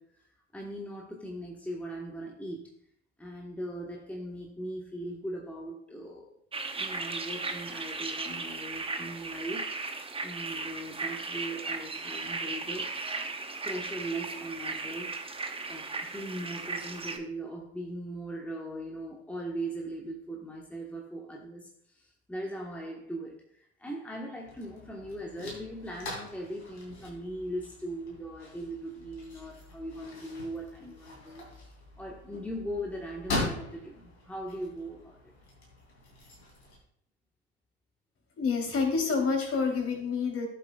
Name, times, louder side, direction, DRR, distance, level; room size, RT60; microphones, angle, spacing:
voice 1, 0.0-2.7 3.2-6.4 6.8-9.8 10.2-13.0 13.6-15.2 15.7-35.3, right 1 dB, 5° left, -1 dB, 1.4 m, -39 dB
sound 1, 6.5-17.2, right 3 dB, 15° right, 1.0 m, -36 dB
sound 2, 24.4-36.8, left 2 dB, 85° left, 2.8 m, -41 dB
voice 2, 38.4-40.5, left 5 dB, 45° left, 1 dB, 3.5 m, -28 dB
13.0 x 7.4 x 2.4 m, 0.66 s
hypercardioid pair, 60°, 33 cm